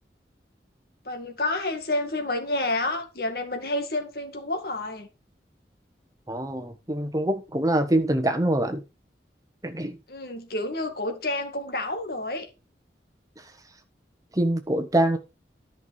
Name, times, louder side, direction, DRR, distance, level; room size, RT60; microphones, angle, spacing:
voice 1, 1.1-5.1 10.1-12.5, left 2 dB, 55° left, 2.0 m, -29 dB
voice 2, 6.3-8.8 9.6-10.0 14.3-15.2, right 1 dB, 20° right, 1.2 m, -24 dB
10.5 x 5.9 x 4.7 m
head